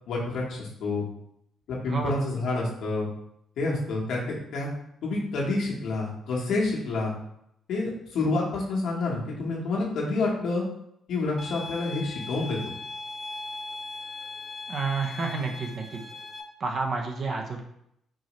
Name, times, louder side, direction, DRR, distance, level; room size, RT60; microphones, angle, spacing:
voice 1, 0.1-1.0 1.7-3.1 3.6-4.7 5.0-7.2 7.7-10.6 11.1-12.6, left 3 dB, 75° left, -3 dB, 1.2 m, -28 dB
voice 2, 1.9-2.3 14.7-16.0 16.6-17.6, right 4 dB, 50° right, 2 dB, 0.7 m, -30 dB
sound 1, 11.4-16.4, left 3 dB, 10° left, 0.6 m, -39 dB
4.6 x 2.8 x 3.1 m, 0.76 s
cardioid pair, 90°, 0 cm